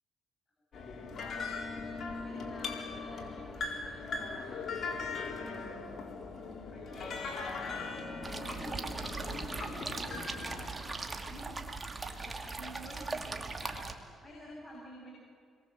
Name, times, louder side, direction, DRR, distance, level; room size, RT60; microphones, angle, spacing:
sound 1, 0.7-10.7, left 4 dB, 55° left, 4.4 m, -39 dB
voice 1, 1.0-5.0 6.7-11.6 11.9-15.1, equal, 25° left, -3 dB, 7.3 m, -50 dB
sound 2, 8.2-13.9, right 3 dB, 25° right, 2.6 m, -39 dB
29.0 x 23.0 x 7.6 m, 2.4 s
cardioid pair, 90°, 0 cm